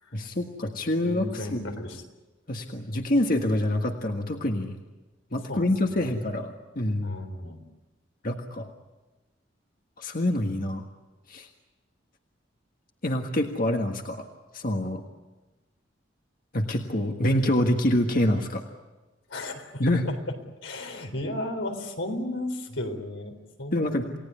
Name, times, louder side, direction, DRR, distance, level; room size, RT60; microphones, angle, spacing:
voice 1, 0.1-1.6 2.5-4.8 5.3-7.2 8.2-8.7 10.0-10.8 11.3-11.5 13.0-14.3 14.5-15.0 16.5-18.6 19.8-20.0 23.7-24.2, left 1 dB, 45° left, 3 dB, 1.6 m, -26 dB
voice 2, 1.0-2.0 5.5-5.6 5.9-6.1 7.0-7.7 19.3-20.1 20.6-24.2, left 1 dB, 85° left, 5 dB, 4.0 m, -34 dB
29.0 x 18.0 x 9.7 m, 1.1 s
head